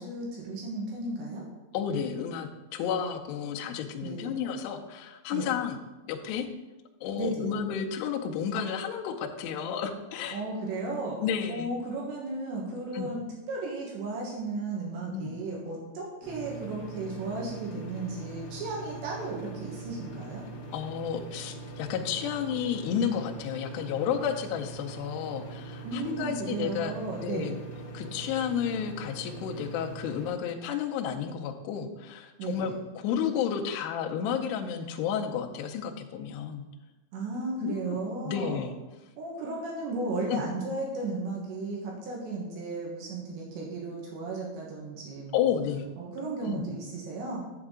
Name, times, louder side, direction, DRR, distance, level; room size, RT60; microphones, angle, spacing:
voice 1, 0.0-1.5 4.0-4.3 5.3-5.5 7.2-7.5 10.3-11.2 11.5-20.4 25.8-27.6 32.4-32.7 37.1-38.7 39.2-45.5 46.0-47.5, right 3 dB, 75° right, -2 dB, 3.4 m, -35 dB
voice 2, 1.7-5.8 6.1-6.5 7.0-10.4 11.2-11.7 12.9-13.1 15.1-15.4 20.7-27.6 27.9-36.6 37.6-38.0 38.3-38.8 40.3-40.4 45.3-45.8 46.4-46.6, left 8 dB, 80° left, 2 dB, 2.5 m, -32 dB
sound 1, 16.2-30.3, right 3 dB, 65° left, 1.6 m, -42 dB
8.0 x 7.6 x 3.7 m, 1.1 s
omnidirectional pair, 5.4 m